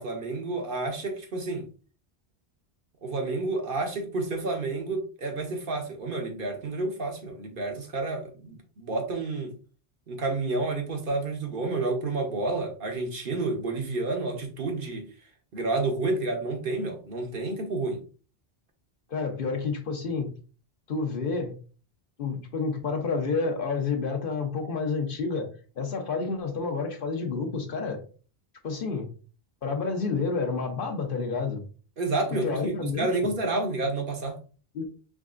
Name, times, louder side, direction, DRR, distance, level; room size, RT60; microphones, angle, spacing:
voice 1, 0.0-1.7 3.0-9.6 10.1-15.1 15.5-18.0 32.0-34.4, right 3 dB, 55° right, 3 dB, 0.9 m, -30 dB
voice 2, 19.1-20.3 20.9-21.5 22.2-28.0 28.6-29.1 29.6-31.6 32.4-33.3 34.7-34.9, left 4 dB, 60° left, 3 dB, 0.9 m, -29 dB
3.6 x 3.2 x 2.4 m, 0.38 s
omnidirectional pair, 1.1 m